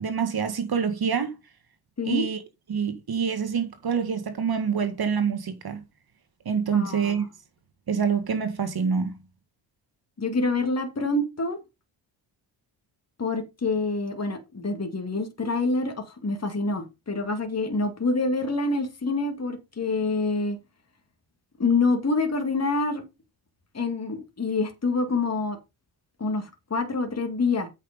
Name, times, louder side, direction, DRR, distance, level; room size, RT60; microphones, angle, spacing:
voice 1, 0.0-1.4 2.1-2.4 2.7-5.8 6.5-7.3 7.9-9.2, right 6 dB, 45° right, 1.8 m, -26 dB
voice 2, 6.7-7.1 10.2-11.6 13.2-20.6 21.6-23.0 23.7-25.6 26.2-27.7, left 3 dB, 30° left, 2.4 m, -26 dB
8.4 x 5.8 x 5.2 m
supercardioid pair, 55°, 49 cm